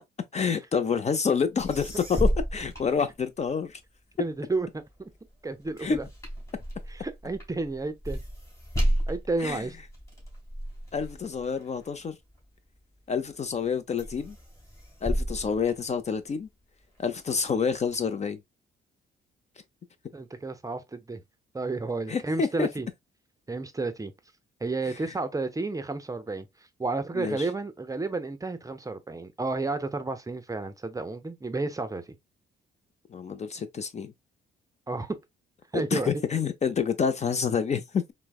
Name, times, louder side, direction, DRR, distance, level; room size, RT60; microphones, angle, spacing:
voice 1, 0.3-3.8 5.8-6.0 9.4-9.6 10.9-12.2 13.1-14.4 15.0-16.5 17.0-18.4 22.1-22.7 27.2-27.5 33.1-34.1 35.7-38.0, left 6 dB, 35° left, 0.5 m, -28 dB
sound 1, 1.6-3.7 4.1-12.8 13.3-13.7 14.0-16.5 16.9-18.0, equal, 15° left, 2.1 m, -33 dB
voice 2, 4.2-5.1 5.4-6.1 6.9-8.2 9.1-9.7 20.1-21.2 21.5-22.9 23.5-24.1 24.6-26.5 26.8-32.1 34.9-35.2 35.7-36.1, right 3 dB, 15° right, 0.6 m, -31 dB
4.5 x 2.1 x 2.3 m
cardioid pair, 90°, 20 cm